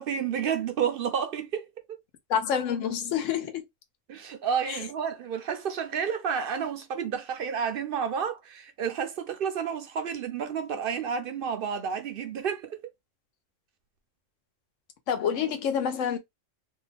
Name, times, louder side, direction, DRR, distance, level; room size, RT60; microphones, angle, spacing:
voice 1, 0.0-1.7 4.1-12.8, right 7 dB, 60° right, 0.6 m, -30 dB
voice 2, 2.3-3.6 4.7-4.8 15.1-16.2, left 8 dB, 80° left, 1.0 m, -27 dB
2.7 x 2.3 x 3.2 m
omnidirectional pair, 1.3 m